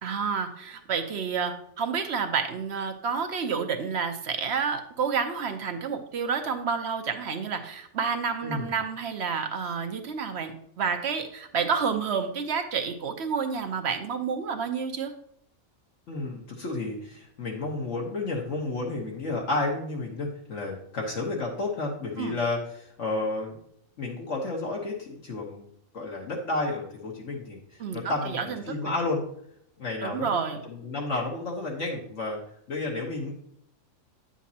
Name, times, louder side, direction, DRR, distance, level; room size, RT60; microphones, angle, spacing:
voice 1, 0.0-15.1 22.2-22.4 27.8-28.9 30.0-30.6, right 6 dB, 60° right, 7 dB, 1.0 m, -29 dB
voice 2, 8.4-8.7 16.1-23.6 24.0-29.2 29.8-32.4 32.7-33.3, left 2 dB, 70° left, -2 dB, 1.5 m, -31 dB
9.5 x 7.2 x 2.8 m, 0.69 s
omnidirectional pair, 1.4 m